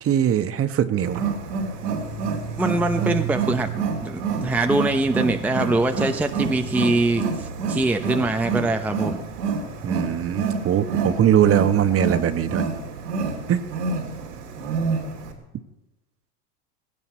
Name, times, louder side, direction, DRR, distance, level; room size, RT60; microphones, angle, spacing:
voice 1, 0.0-1.2 9.8-12.6 13.5-13.7, right 9 dB, 30° right, 11 dB, 1.1 m, -21 dB
Wild animals, 1.0-15.3, right 5 dB, 85° right, 3.0 m, -28 dB
voice 2, 2.6-9.2, right 2 dB, 5° right, 6 dB, 0.7 m, -23 dB
17.0 x 16.5 x 4.3 m, 0.97 s
hypercardioid pair, 95°, 47 cm